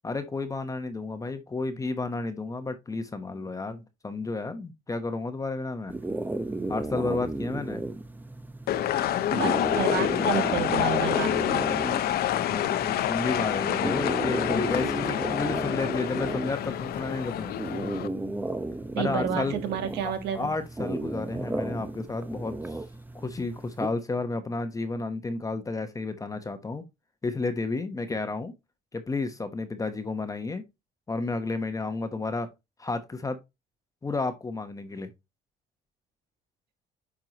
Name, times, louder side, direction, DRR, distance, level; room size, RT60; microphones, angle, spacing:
voice 1, 0.0-5.9 6.7-7.8 12.5-17.6 19.0-19.5 20.0-22.8 23.1-26.8 27.2-28.5 28.9-30.6 31.1-32.5 32.8-33.4 34.0-35.1, left 3 dB, 20° left, 1.0 m, -32 dB
sound 1, 5.9-23.9, right 2 dB, 10° right, 0.7 m, -34 dB
sound 2, 8.7-18.1, left 12 dB, 65° left, 0.7 m, -27 dB
voice 2, 9.3-11.8 18.9-20.5, right 8 dB, 80° right, 1.6 m, -31 dB
9.0 x 4.7 x 2.9 m
cardioid pair, 110°, 17 cm